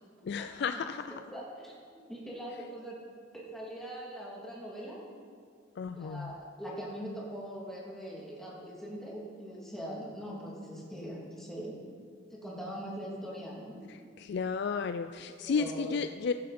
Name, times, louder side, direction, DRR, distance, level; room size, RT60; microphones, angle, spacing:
voice 1, 0.2-1.0 5.8-6.3 14.2-16.3, left 5 dB, 60° left, 9 dB, 0.3 m, -33 dB
voice 2, 1.3-1.7 2.1-3.0 3.3-5.1 5.9-11.8 12.3-13.9 15.4-16.0, equal, ahead, -6 dB, 2.8 m, -42 dB
15.5 x 11.0 x 4.3 m, 2.1 s
head